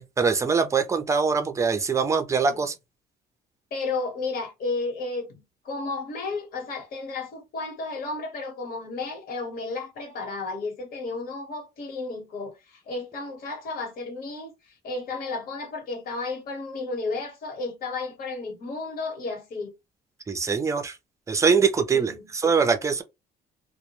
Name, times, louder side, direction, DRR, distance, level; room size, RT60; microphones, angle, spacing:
voice 1, 0.0-2.7 20.3-20.9 21.3-23.0, right 5 dB, 20° right, 0.4 m, -23 dB
voice 2, 3.7-14.5 14.8-19.7 21.9-22.3, left 3 dB, 60° left, 1.1 m, -33 dB
2.1 x 2.1 x 2.9 m
cardioid pair, 110°, 17 cm